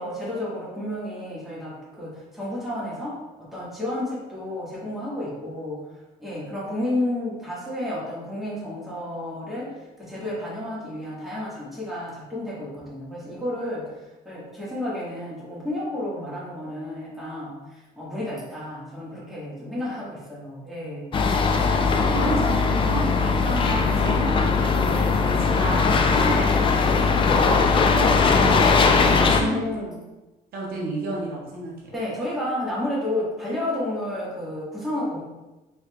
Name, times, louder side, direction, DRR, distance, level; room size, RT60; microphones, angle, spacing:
voice 1, 0.0-5.9 6.2-13.9 14.2-21.2 26.3-26.7 29.4-30.0 31.9-35.2, left 1 dB, ahead, -8 dB, 1.4 m, -31 dB
sound 1, 21.1-29.4, left 4 dB, 30° left, 0.3 m, -20 dB
voice 2, 22.1-27.6 27.8-29.6 30.5-31.9, right 2 dB, 60° right, -3 dB, 0.9 m, -32 dB
3.7 x 3.4 x 2.2 m, 1.1 s
cardioid pair, 110°, 17 cm